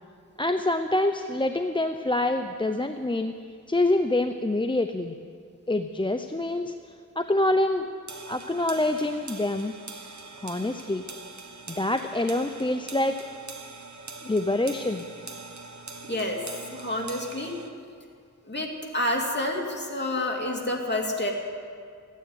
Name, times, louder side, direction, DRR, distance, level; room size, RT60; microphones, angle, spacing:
voice 1, 0.4-3.3 3.7-5.1 5.7-6.8 7.2-7.9 8.3-9.7 10.4-11.1 11.7-13.2 14.2-15.0, left 2 dB, 15° left, 7 dB, 0.6 m, -26 dB
sound 1, 8.1-17.7, right 3 dB, 65° right, 1.4 m, -43 dB
voice 2, 16.0-16.4 16.7-17.5 18.4-21.3, left 1 dB, 35° left, 0 dB, 2.6 m, -29 dB
15.0 x 9.3 x 9.4 m, 2.2 s
wide cardioid pair, 50°, 31 cm